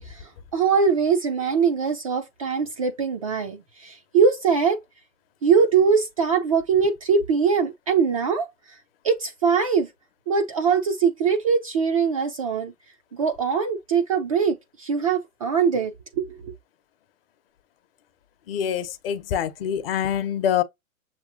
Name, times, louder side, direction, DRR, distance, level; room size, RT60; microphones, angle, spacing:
voice 1, 0.0-4.8 5.4-8.8 9.0-9.9 10.3-12.7 13.1-16.5, right 6 dB, 25° right, 0.4 m, -22 dB
voice 2, 18.5-20.6, left 9 dB, 40° left, 0.8 m, -25 dB
7.0 x 3.0 x 2.5 m
hypercardioid pair, 120°, 42 cm